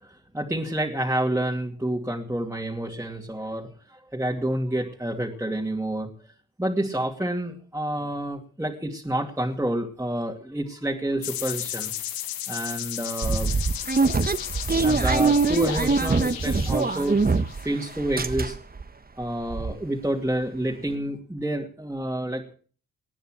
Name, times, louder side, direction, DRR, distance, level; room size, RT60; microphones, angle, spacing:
voice 1, 0.0-6.1 6.6-11.9 12.5-13.5 14.8-18.6 19.2-22.5, right 1 dB, 10° right, -1 dB, 2.5 m, -29 dB
sound 1, 11.2-17.9, left 11 dB, 90° left, 1.3 m, -34 dB
sound 2, 13.2-17.7 18.0-18.8 19.2-19.3 19.5-19.7, right 4 dB, 25° right, 1.3 m, -23 dB
19.5 x 9.2 x 6.3 m, 0.43 s
supercardioid pair, 55°, 35 cm